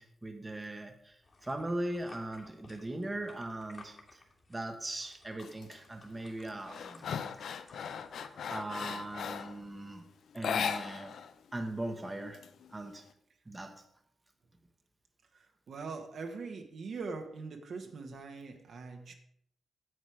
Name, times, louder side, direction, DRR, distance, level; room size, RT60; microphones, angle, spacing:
voice 1, 0.0-4.2 4.5-7.1 8.5-10.1 10.3-11.2 11.5-12.4 12.7-13.1 13.5-13.9, right 1 dB, 20° right, 6 dB, 1.2 m, -39 dB
sound 1, 1.2-9.1, left 3 dB, 40° left, 2.3 m, -58 dB
sound 2, 5.4-5.8 6.2-9.6 10.3-11.3 11.6-11.7 12.1-13.0, left 7 dB, 75° left, 0.6 m, -37 dB
voice 2, 15.3-19.1, right 4 dB, 70° right, 4 dB, 1.5 m, -42 dB
9.4 x 7.7 x 5.0 m, 0.70 s
cardioid pair, 80°, 0 cm